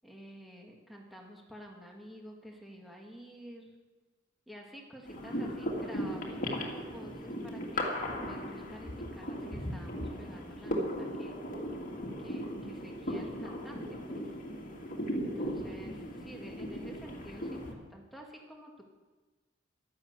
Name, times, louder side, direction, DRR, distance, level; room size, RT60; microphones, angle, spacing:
voice 1, 0.0-3.7 4.5-11.4 12.2-14.4 15.1-18.9, equal, ahead, 0 dB, 1.9 m, -50 dB
sound 1, 5.1-17.7, equal, 40° left, 2.3 m, -37 dB
12.5 x 12.0 x 8.1 m, 1.3 s
head